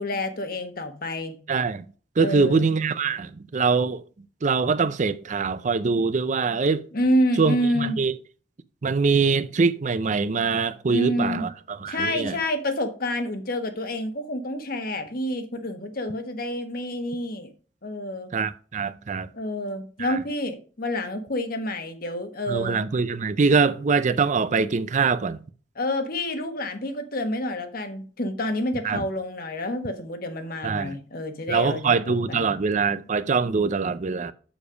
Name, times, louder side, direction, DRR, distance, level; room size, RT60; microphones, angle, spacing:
voice 1, 0.0-1.4 2.2-2.7 6.9-8.0 10.9-11.4 11.9-17.5 17.8-18.3 19.3-22.8 25.8-32.5, left 1 dB, 55° left, 1.3 m, -28 dB
voice 2, 1.5-1.8 2.2-4.0 4.4-6.9 7.4-8.1 8.8-12.4 18.3-19.3 20.0-20.2 22.5-25.4 28.8-29.1 30.6-31.0 31.5-34.3, right 4 dB, 40° right, 0.5 m, -23 dB
7.2 x 6.9 x 5.0 m
head